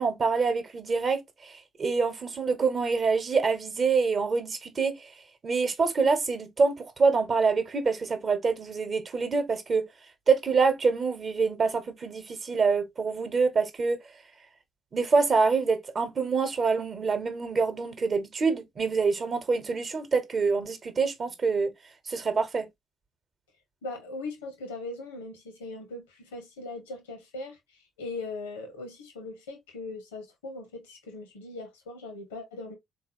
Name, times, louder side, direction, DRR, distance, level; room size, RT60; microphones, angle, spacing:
voice 1, 0.0-1.5 1.8-5.0 5.4-9.9 10.3-14.0 14.9-21.7 22.1-22.7, right 4 dB, 45° right, 0.9 m, -26 dB
voice 2, 23.8-32.8, left 3 dB, 85° left, 0.9 m, -40 dB
3.7 x 2.6 x 2.7 m
hypercardioid pair, 50°, 0 cm